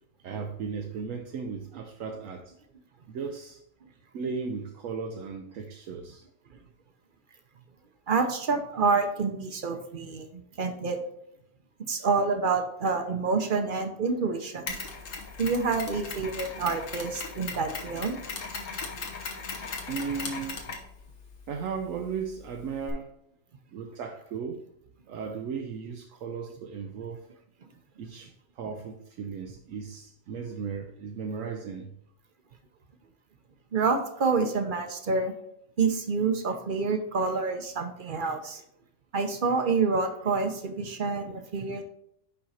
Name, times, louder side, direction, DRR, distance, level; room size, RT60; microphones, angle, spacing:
voice 1, 0.2-2.5 3.1-3.6 4.1-6.2 19.9-20.6 21.5-23.1 23.7-24.6 25.1-27.3 28.0-31.9, right 5 dB, 80° right, 3 dB, 1.0 m, -36 dB
voice 2, 8.1-11.0 11.8-14.7 15.4-18.2 33.7-35.3 35.8-38.6 39.1-41.8, right 4 dB, 45° right, 6 dB, 0.8 m, -27 dB
Mechanisms, 14.7-22.9, left 4 dB, 75° left, 1.5 m, -39 dB
5.6 x 5.2 x 4.2 m, 0.75 s
omnidirectional pair, 1.4 m